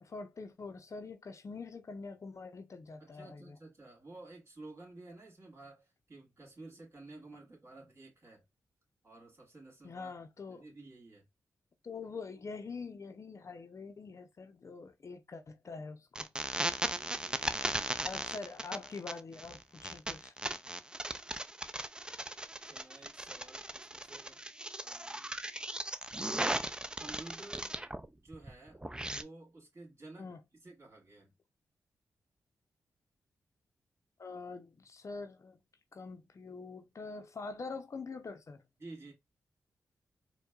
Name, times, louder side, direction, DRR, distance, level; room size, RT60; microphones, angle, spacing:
voice 1, 0.0-3.6 9.8-10.6 11.8-16.3 18.0-20.3 30.2-30.4 34.2-35.6 35.9-38.6, left 4 dB, 50° left, 0.6 m, -45 dB
voice 2, 3.0-8.4 9.0-10.1 10.5-11.3 16.9-18.0 21.2-21.5 22.6-24.4 24.8-25.4 27.0-27.8 28.2-30.3 30.6-31.3 38.8-39.1, right 2 dB, 40° right, 2.3 m, -52 dB
sound 1, 16.2-28.1 28.3-29.2, right 1 dB, 15° right, 0.4 m, -37 dB
4.4 x 2.2 x 2.3 m
supercardioid pair, 45°, 7 cm